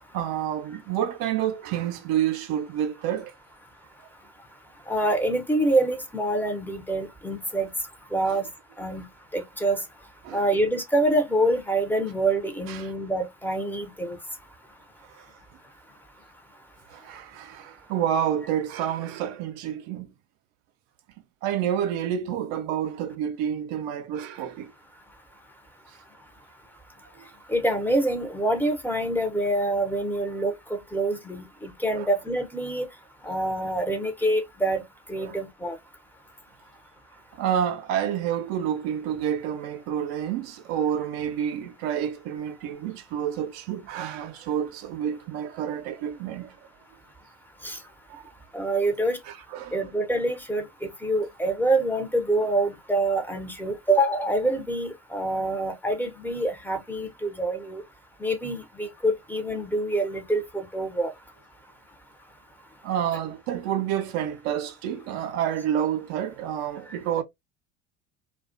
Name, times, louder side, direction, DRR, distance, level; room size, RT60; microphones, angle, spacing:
voice 1, 0.1-3.3 8.3-8.4 10.2-10.5 12.7-12.9 15.1-15.3 16.9-20.1 21.4-24.7 27.2-27.3 31.9-32.1 35.2-35.4 37.3-46.6 48.1-48.2 49.3-49.8 62.8-67.2, right 9 dB, 55° right, 0.4 m, -29 dB
voice 2, 4.9-7.7 8.1-8.5 8.8-9.1 9.3-9.8 10.3-14.2 27.5-32.9 33.2-34.8 35.1-35.8 47.6-47.8 48.5-49.2 49.7-57.8 58.2-61.1, right 1 dB, 5° left, 0.5 m, -26 dB
2.3 x 2.1 x 2.5 m
hypercardioid pair, 75°, 31 cm